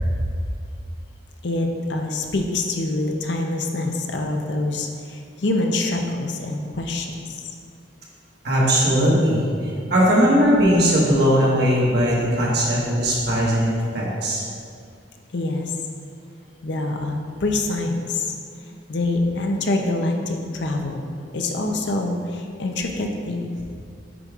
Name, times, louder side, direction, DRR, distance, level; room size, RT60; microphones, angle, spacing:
voice 1, 1.4-7.4 15.3-15.7 16.6-18.3 18.9-21.0 21.3-23.5, left 2 dB, 60° left, 3 dB, 0.5 m, -25 dB
voice 2, 8.4-14.4, equal, 55° right, -5 dB, 1.4 m, -19 dB
8.4 x 5.2 x 2.4 m, 2.3 s
head